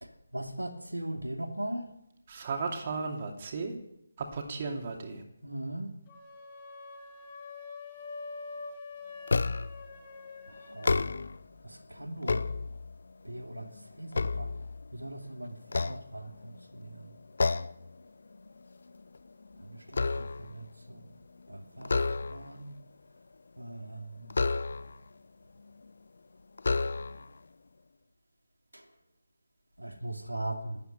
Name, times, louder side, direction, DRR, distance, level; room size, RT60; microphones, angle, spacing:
voice 1, 0.0-1.9 5.4-5.9 10.5-11.2 11.6-12.5 13.2-13.7 13.9-14.5 14.9-17.1 19.6-21.0 21.5-22.7 23.6-24.3 28.7-28.8 29.8-30.8, right 1 dB, 85° right, 5 dB, 2.5 m, -40 dB
voice 2, 2.3-3.7 4.2-5.2, right 4 dB, 35° right, 4 dB, 2.6 m, -35 dB
sound 1, 6.1-11.0, left 4 dB, 25° left, 2.8 m, -45 dB
sound 2, 9.3-9.9 10.7-11.5 12.0-13.1 13.6-15.1 15.6-16.6 17.4-17.9 18.3-18.5 18.9-20.6 21.8-22.6 24.3-25.1 25.9-26.0 26.6-27.4, left 3 dB, 55° left, 0.8 m, -31 dB
13.0 x 11.0 x 8.8 m, 0.81 s
figure-of-eight pair, 150°, 0 cm